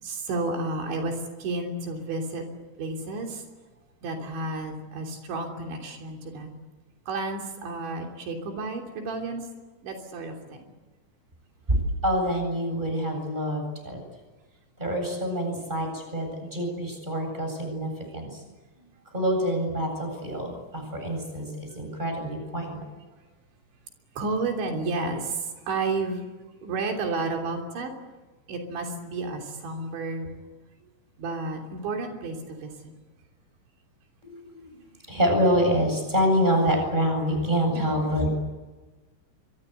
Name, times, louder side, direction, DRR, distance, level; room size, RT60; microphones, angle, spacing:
voice 1, 0.0-2.4 2.8-3.4 4.0-6.5 7.1-9.5 9.8-10.6 24.2-26.3 26.6-27.9 28.5-30.3 31.2-32.9 37.8-37.9, right 3 dB, 85° right, 2 dB, 5.5 m, -31 dB
voice 2, 12.0-14.0 14.8-18.4 19.1-22.8 34.2-34.7 35.1-38.3, equal, 10° right, 3 dB, 8.0 m, -26 dB
27.5 x 24.0 x 8.2 m, 1.2 s
omnidirectional pair, 5.1 m